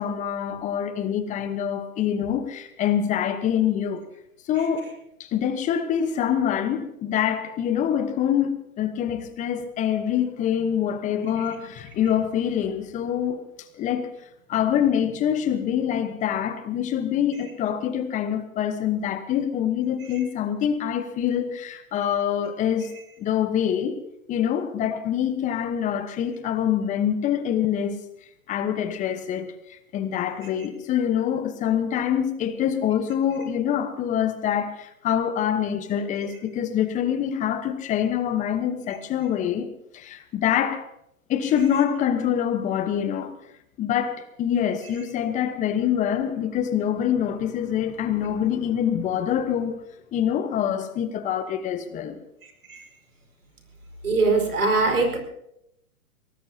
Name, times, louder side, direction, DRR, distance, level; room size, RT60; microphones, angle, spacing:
voice 1, 0.0-4.0 4.5-4.9 5.2-13.4 13.8-14.1 14.5-22.9 23.2-24.0 24.3-28.0 28.5-39.7 39.9-40.9 41.3-43.3 43.8-49.8 50.1-52.2, left 9 dB, 15° left, 1.1 m, -25 dB
voice 2, 54.0-55.2, right 3 dB, 85° right, 5.2 m, -21 dB
23.5 x 18.5 x 2.8 m
hypercardioid pair, 130°, 43 cm